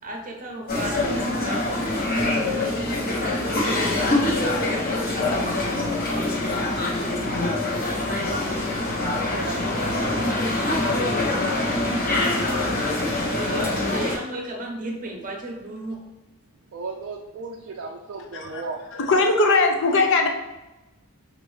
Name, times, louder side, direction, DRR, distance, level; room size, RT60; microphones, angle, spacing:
voice 1, 0.0-2.0 13.3-16.0, right 1 dB, 35° right, 1 dB, 0.8 m, -34 dB
sound 1, 0.7-14.2, left 2 dB, 40° left, 1.0 m, -24 dB
voice 2, 2.8-3.2 9.0-10.4 12.8-13.6 16.7-18.8, right 3 dB, 60° right, 0 dB, 0.4 m, -36 dB
voice 3, 18.9-20.3, left 3 dB, 55° left, 4 dB, 0.6 m, -20 dB
5.1 x 2.6 x 3.2 m, 1.0 s
head